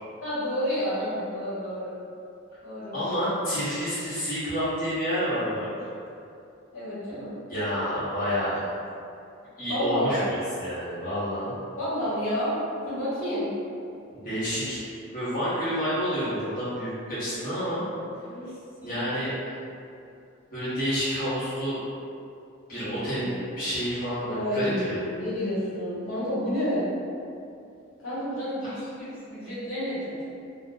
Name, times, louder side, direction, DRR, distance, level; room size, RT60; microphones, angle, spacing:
voice 1, 0.2-1.9 2.6-3.0 6.7-7.3 9.7-10.2 11.8-12.6 12.8-13.5 18.3-18.5 18.8-19.0 22.8-23.3 24.2-26.9 28.0-30.2, equal, 80° left, -11 dB, 1.3 m, -30 dB
voice 2, 2.9-5.7 7.5-8.6 9.6-11.5 14.2-14.8 15.1-17.8 18.8-19.3 20.5-21.8 22.7-25.0, equal, 40° left, -14 dB, 1.0 m, -29 dB
2.4 x 2.4 x 3.9 m, 2.6 s
head